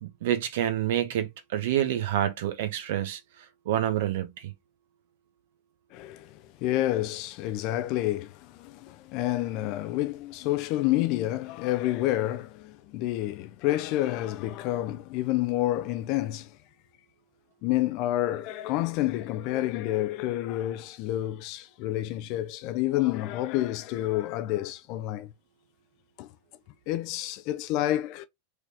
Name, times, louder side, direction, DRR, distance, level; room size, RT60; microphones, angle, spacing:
voice 1, 0.0-3.2 3.7-4.5, right 11 dB, 55° right, 0.9 m, -28 dB
voice 2, 5.9-16.5 17.6-25.3 26.2-26.3 26.9-28.3, left 15 dB, 40° left, 0.5 m, -29 dB
4.8 x 3.2 x 2.6 m
figure-of-eight pair, 90°, 0 cm